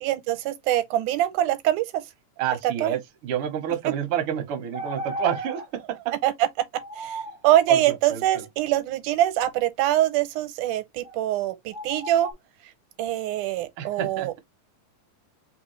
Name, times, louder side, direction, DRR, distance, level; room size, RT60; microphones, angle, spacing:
voice 1, 0.0-2.0 2.8-3.0 6.2-6.3 7.0-12.3 13.0-14.4, right 13 dB, 90° right, 2.1 m, -24 dB
voice 2, 2.4-6.1 7.7-8.5 13.8-14.3, right 9 dB, 60° right, 1.6 m, -29 dB
sound 1, 4.1-4.2 4.7-5.6 6.7-7.4 11.0-11.2 11.7-12.3, right 1 dB, 15° left, 0.6 m, -34 dB
4.2 x 3.6 x 3.1 m
omnidirectional pair, 3.6 m